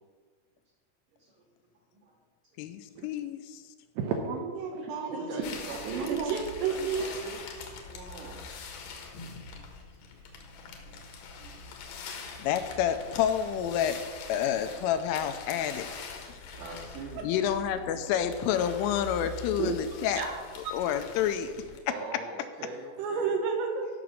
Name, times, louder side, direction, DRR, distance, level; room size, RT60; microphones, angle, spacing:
voice 1, 2.6-3.6 12.4-14.0 14.3-15.9 16.3-16.4 17.2-20.2 20.7-21.5, left 9 dB, 85° left, 9 dB, 3.1 m, -29 dB
voice 2, 4.0-5.3 5.7-6.4, right 5 dB, 75° right, 2 dB, 2.6 m, -33 dB
voice 3, 5.0-6.1 6.7-7.4 7.6-8.5 9.5-9.8 10.1-11.0 11.2-11.7 16.1-17.3 20.0-20.1 21.4-23.3, right 3 dB, 55° right, -7 dB, 2.7 m, -43 dB
sound 1, 5.4-21.8, left 4 dB, 70° left, 2.5 m, -43 dB
voice 4, 6.3-7.1 19.6-19.8 20.2-20.8 23.0-23.9, right 5 dB, 90° right, 3 dB, 4.1 m, -30 dB
14.0 x 6.0 x 6.3 m, 1.5 s
omnidirectional pair, 5.8 m